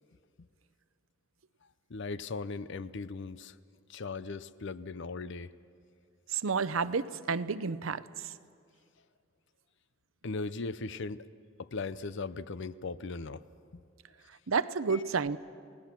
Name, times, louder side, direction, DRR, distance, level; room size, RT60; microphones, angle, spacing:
voice 1, 1.9-3.5 3.9-5.5 10.2-11.2 11.6-13.4 13.7-13.8 14.9-15.0, left 3 dB, 65° left, 15 dB, 0.6 m, -38 dB
voice 2, 6.3-8.3 14.5-15.4, right 5 dB, 80° right, 14 dB, 0.7 m, -30 dB
29.5 x 18.5 x 6.0 m, 2.3 s
head